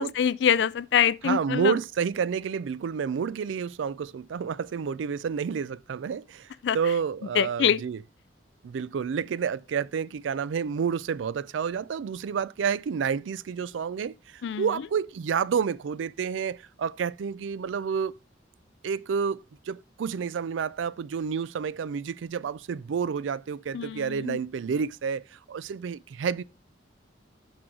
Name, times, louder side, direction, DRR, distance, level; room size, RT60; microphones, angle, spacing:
voice 1, 0.0-1.8 6.6-6.8 7.4-7.8 14.4-14.9 23.7-24.4, left 8 dB, 65° left, 0.3 m, -25 dB
voice 2, 1.2-6.5 6.7-8.0 8.6-18.1 18.8-26.4, right 6 dB, 85° right, 0.4 m, -29 dB
6.2 x 6.2 x 4.6 m
head